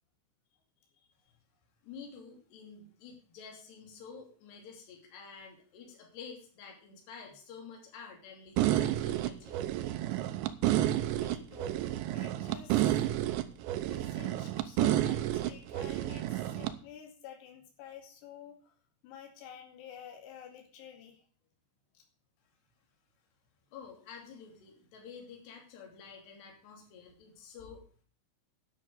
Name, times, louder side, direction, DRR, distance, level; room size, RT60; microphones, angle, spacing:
voice 1, 0.9-1.3 11.1-13.1 13.5-13.6 13.9-18.7 19.0-21.2 21.9-22.0, left 9 dB, 90° left, 2 dB, 5.0 m, -50 dB
voice 2, 1.8-9.6 23.7-28.0, left 6 dB, 55° left, 0 dB, 4.7 m, -50 dB
sound 1, 8.6-16.7, right 13 dB, 80° right, 2.6 m, -30 dB
10.5 x 7.4 x 7.9 m, 0.44 s
omnidirectional pair, 6.0 m